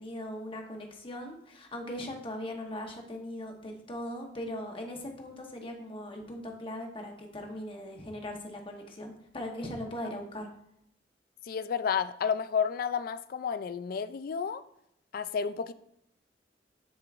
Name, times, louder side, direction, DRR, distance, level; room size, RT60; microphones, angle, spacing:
voice 1, 0.0-10.5, left 1 dB, 30° left, 2 dB, 1.1 m, -39 dB
voice 2, 11.4-14.6 15.1-15.7, left 6 dB, 55° left, 14 dB, 0.3 m, -31 dB
10.0 x 4.8 x 2.5 m, 0.74 s
head